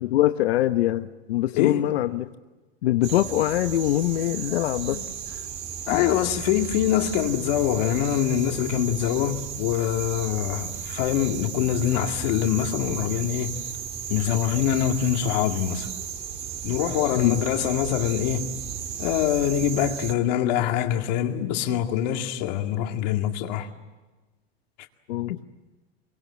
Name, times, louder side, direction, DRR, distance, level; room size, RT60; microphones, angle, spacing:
voice 1, 0.0-2.3 2.8-5.0 5.3-5.4 5.9-6.1 17.1-17.4 25.1-25.4, left 14 dB, 90° left, 1.1 m, -23 dB
voice 2, 1.5-1.8 4.9-5.1 5.9-13.6 14.1-15.9 16.6-18.5 19.0-23.7, left 11 dB, 45° left, 2.1 m, -24 dB
sound 1, 3.0-20.1, right 7 dB, 20° right, 1.6 m, -35 dB
26.5 x 24.0 x 8.7 m
supercardioid pair, 180°, 31 cm